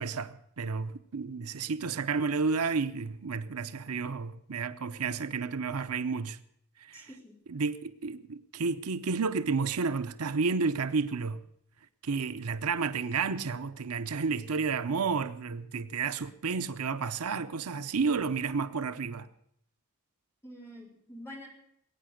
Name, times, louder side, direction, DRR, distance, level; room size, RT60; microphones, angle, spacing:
voice 1, 0.0-6.4 6.8-7.1 7.5-11.5 12.0-19.3, right 5 dB, 85° right, 0.8 m, -31 dB
voice 2, 6.9-7.4 20.4-21.5, equal, 10° left, 4.1 m, -46 dB
21.0 x 9.2 x 6.4 m
head